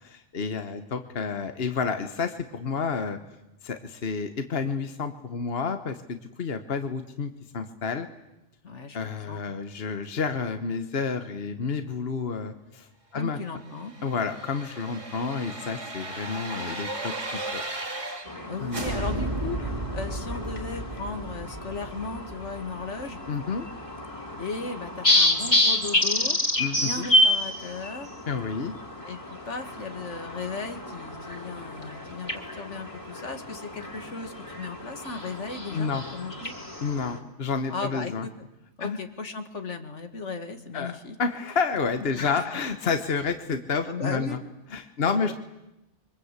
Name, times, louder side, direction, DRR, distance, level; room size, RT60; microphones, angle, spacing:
voice 1, 0.0-3.2 3.6-8.1 8.9-12.9 13.1-13.4 14.0-17.6 18.6-18.8 23.3-23.7 26.6-27.1 28.3-28.7 35.7-36.0 36.8-38.3 38.8-39.0 40.7-44.4 44.7-45.3, left 5 dB, 55° left, 8 dB, 1.5 m, -30 dB
voice 2, 8.6-9.4 13.1-13.9 18.5-23.2 24.4-26.4 26.7-28.1 29.0-36.5 37.7-38.5 38.8-41.2 42.2-42.5 43.9-44.4 45.0-45.3, left 4 dB, 80° left, 7 dB, 2.3 m, -36 dB
sound 1, 13.7-18.4 18.7-23.6 23.9-24.0, right 2 dB, 25° right, 2.9 m, -35 dB
sound 2, 18.3-37.2, left 1 dB, 25° left, 3.0 m, -29 dB
26.0 x 24.0 x 8.3 m, 0.92 s
omnidirectional pair, 1.2 m